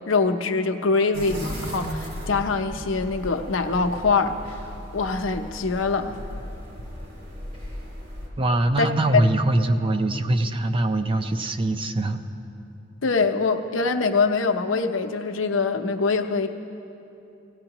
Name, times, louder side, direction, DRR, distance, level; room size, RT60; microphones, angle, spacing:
voice 1, 0.0-4.4 4.9-6.2 8.8-8.9 13.0-16.5, left 4 dB, 80° left, 6 dB, 0.7 m, -24 dB
sound 1, 1.1-8.3, equal, 50° right, 3.4 m, -36 dB
voice 2, 8.4-12.2, right 1 dB, 25° right, 7 dB, 0.6 m, -23 dB
17.5 x 17.0 x 3.0 m, 2.8 s
head